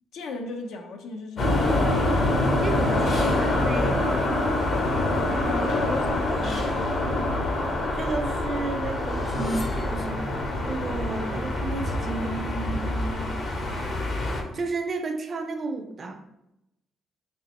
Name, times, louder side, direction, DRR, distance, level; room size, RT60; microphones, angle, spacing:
voice 1, 0.1-2.2 5.1-7.4, left 3 dB, 85° left, 0.4 m, -36 dB
sound 1, 1.4-14.4, left 1 dB, 55° left, 0.7 m, -25 dB
voice 2, 2.4-4.1 7.9-10.2 10.7-13.4 14.5-16.2, right 3 dB, 45° right, 0.4 m, -32 dB
sound 2, 8.8-10.5, right 1 dB, 25° left, 0.4 m, -40 dB
3.0 x 3.0 x 3.0 m
cardioid pair, 90°, 0 cm